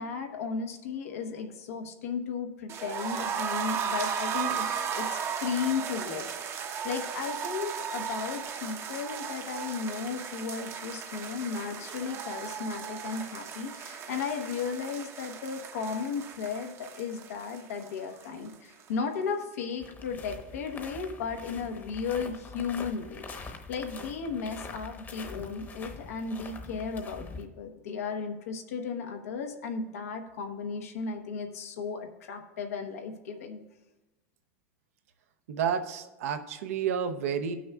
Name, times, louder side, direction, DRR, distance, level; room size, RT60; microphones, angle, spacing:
voice 1, 0.0-33.6, left 5 dB, 85° left, 3 dB, 1.1 m, -35 dB
sound 1, 2.7-18.5 18.8-18.9 19.2-19.3, right 7 dB, 35° right, 0.8 m, -36 dB
sound 2, 19.8-27.5, left 3 dB, 25° left, 1.0 m, -44 dB
voice 2, 35.5-37.5, right 7 dB, 80° right, 7 dB, 0.8 m, -30 dB
18.0 x 6.2 x 2.3 m, 1.1 s
supercardioid pair, 110°, 8 cm